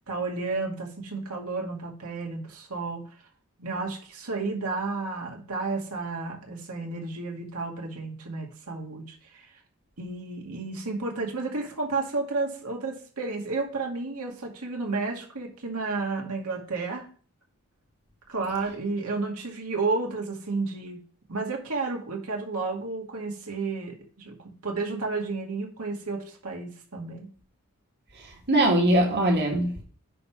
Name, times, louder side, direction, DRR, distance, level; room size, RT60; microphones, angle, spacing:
voice 1, 0.1-3.0 3.6-9.5 10.0-17.1 18.3-21.0 21.3-27.3, right 3 dB, 85° right, 2.2 m, -32 dB
voice 2, 28.2-29.8, right 1 dB, 50° right, 1.7 m, -22 dB
10.0 x 3.6 x 5.8 m
head